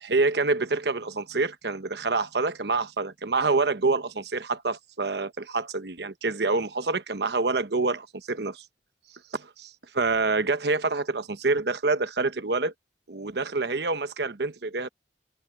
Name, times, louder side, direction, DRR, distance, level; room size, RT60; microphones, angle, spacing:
voice 1, 0.0-8.6 9.3-9.7 9.9-12.7 13.1-14.9, right 3 dB, 65° right, 1.1 m, -27 dB
head